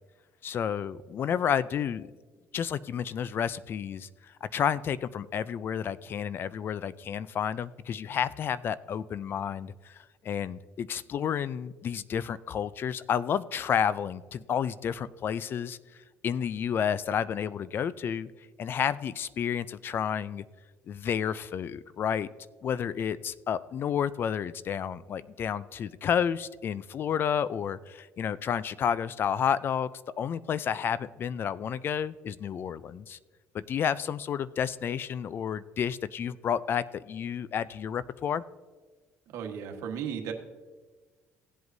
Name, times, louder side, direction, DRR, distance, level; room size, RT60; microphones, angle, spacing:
voice 1, 0.4-2.1 2.5-4.1 4.4-10.0 10.2-15.8 16.2-18.3 18.6-20.4 20.9-22.3 22.6-29.9 30.2-33.2 33.5-38.4, left 8 dB, 45° left, 17 dB, 0.4 m, -30 dB
voice 2, 39.3-40.3, right 8 dB, 75° right, 3 dB, 1.3 m, -35 dB
16.5 x 7.9 x 2.7 m, 1.4 s
cardioid pair, 110°, 5 cm